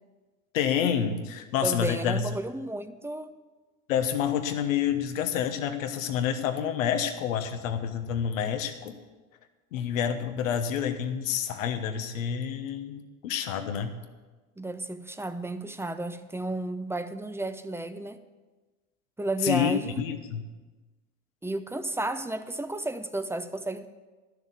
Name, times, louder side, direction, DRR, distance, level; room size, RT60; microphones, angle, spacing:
voice 1, 0.5-2.3 3.9-9.0 9.7-14.0 19.4-20.4, left 8 dB, 75° left, 8 dB, 1.3 m, -28 dB
voice 2, 1.6-3.3 14.6-18.2 19.2-20.0 21.4-23.9, right 2 dB, 5° right, 11 dB, 0.7 m, -32 dB
12.5 x 6.7 x 8.2 m, 1.3 s
hypercardioid pair, 85°, 40 cm